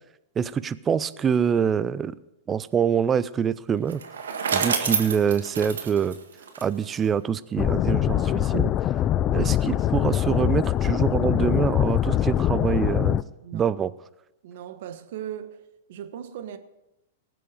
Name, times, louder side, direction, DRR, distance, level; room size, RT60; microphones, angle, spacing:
voice 1, 0.4-2.1 2.5-4.0 4.5-6.2 6.6-8.7 9.3-13.2 13.5-13.9, right 7 dB, 20° right, 0.5 m, -25 dB
Bicycle, 3.8-7.1, right 6 dB, 80° right, 1.7 m, -28 dB
sound 1, 7.6-13.2, left 12 dB, 35° left, 0.5 m, -23 dB
voice 2, 14.4-15.6 15.9-16.6, right 10 dB, 65° right, 1.2 m, -38 dB
19.0 x 7.8 x 5.1 m
hypercardioid pair, 115°, 0 cm